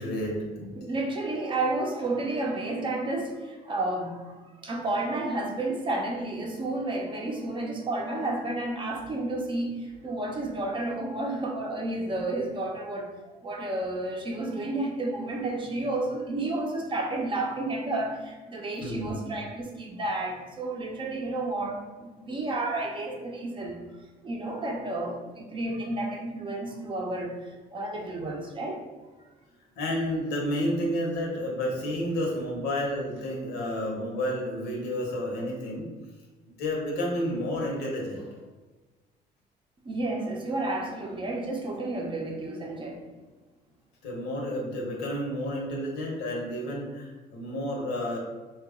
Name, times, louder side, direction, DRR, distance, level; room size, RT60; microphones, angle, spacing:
voice 1, 0.0-0.7 18.8-19.2 29.8-35.9 36.5-38.3 44.0-48.2, equal, 75° left, -1 dB, 1.0 m, -30 dB
voice 2, 0.8-23.8 24.2-27.3 27.7-28.8 39.8-43.0, right 2 dB, 30° right, 0 dB, 0.6 m, -31 dB
2.9 x 2.3 x 3.5 m, 1.2 s
cardioid pair, 110°, 17 cm